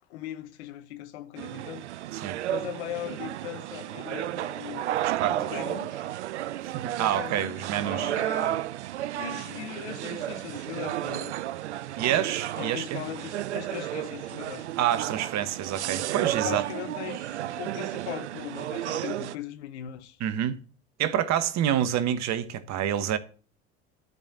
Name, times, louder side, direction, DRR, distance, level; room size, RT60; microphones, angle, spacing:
voice 1, 0.1-1.8 2.5-5.0 5.3-6.1 7.0-8.6 9.2-11.3 12.6-14.7 16.2-20.2, left 12 dB, 75° left, 1.2 m, -39 dB
sound 1, 1.4-19.4, right 13 dB, 90° right, 0.5 m, -32 dB
voice 2, 5.0-5.6 6.6-8.2 12.0-13.0 14.8-16.6 20.2-20.6 21.0-23.2, right 10 dB, 55° right, 1.3 m, -28 dB
12.5 x 5.3 x 8.1 m
hypercardioid pair, 75°, 33 cm